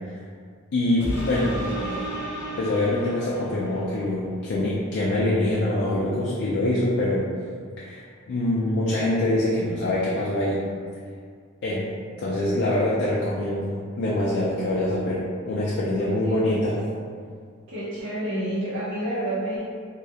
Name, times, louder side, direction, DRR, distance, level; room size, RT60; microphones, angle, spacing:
voice 1, 0.7-1.6 2.3-7.2 7.8-10.6 11.6-11.8 12.2-16.8, left 1 dB, 55° left, -6 dB, 0.3 m, -24 dB
sound 1, 1.0-3.9 4.4-4.5, right 1 dB, 10° left, 0.7 m, -33 dB
voice 2, 1.4-2.1 15.9-16.5 17.7-19.6, right 1 dB, 65° right, -12 dB, 0.6 m, -30 dB
2.3 x 2.0 x 2.7 m, 2.1 s
head